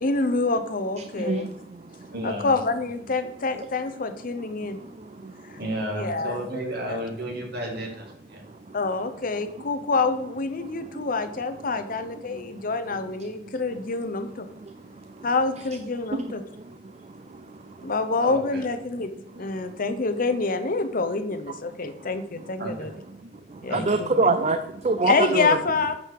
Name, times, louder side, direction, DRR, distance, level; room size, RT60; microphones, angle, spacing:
voice 1, 0.0-1.5 2.2-4.8 5.5-5.6 5.9-6.4 6.9-7.0 8.7-14.5 15.2-16.4 17.8-19.1 19.4-22.9 23.6-24.3 25.0-26.0, left 3 dB, 50° left, 10 dB, 0.8 m, -27 dB
voice 2, 1.2-1.9 4.8-5.3 10.9-11.0 12.3-12.4 14.6-14.7 21.8-21.9 23.5-25.6, right 3 dB, 35° right, 8 dB, 0.5 m, -25 dB
voice 3, 2.1-2.5 5.6-8.4 18.2-18.6 22.6-22.9 23.7-24.0, right 1 dB, 60° right, 0 dB, 2.5 m, -32 dB
9.1 x 5.4 x 4.7 m, 0.81 s
head